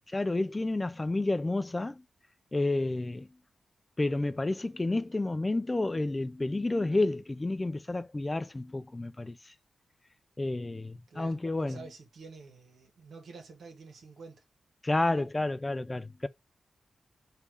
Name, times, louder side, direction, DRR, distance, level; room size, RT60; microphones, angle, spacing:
voice 1, 0.1-2.0 2.5-3.3 4.0-9.4 10.4-11.8 14.8-16.3, left 2 dB, 25° left, 0.5 m, -30 dB
voice 2, 11.1-14.4, right 4 dB, 75° right, 1.5 m, -49 dB
3.6 x 2.7 x 4.5 m
cardioid pair, 50°, 0 cm